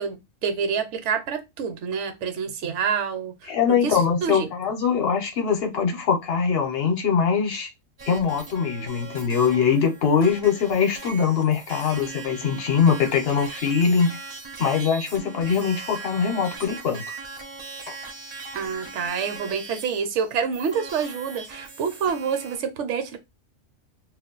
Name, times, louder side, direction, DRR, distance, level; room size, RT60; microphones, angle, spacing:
voice 1, 0.0-4.5 18.5-23.2, right 6 dB, 70° right, 0.9 m, -27 dB
voice 2, 3.5-7.7 8.1-14.2 14.6-17.0, left 6 dB, 55° left, 0.9 m, -22 dB
sound 1, 8.0-22.6, right 4 dB, 40° right, 0.4 m, -40 dB
2.4 x 2.2 x 3.8 m
omnidirectional pair, 1.3 m